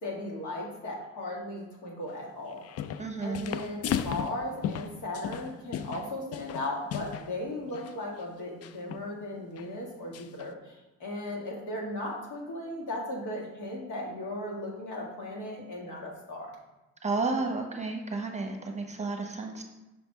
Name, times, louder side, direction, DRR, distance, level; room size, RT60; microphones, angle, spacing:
voice 1, 0.0-2.6 3.2-10.7 11.0-16.5, left 1 dB, 75° left, -3 dB, 1.9 m, -36 dB
sound 1, 2.5-3.1 3.3-7.3 7.7-7.9 8.6-9.1 9.6-9.7 10.1-10.5, left 9 dB, 55° left, 0.4 m, -35 dB
voice 2, 3.0-3.5 17.0-19.6, right 3 dB, 25° right, 3 dB, 0.9 m, -32 dB
5.8 x 3.4 x 5.4 m, 1.0 s
cardioid pair, 90°, 30 cm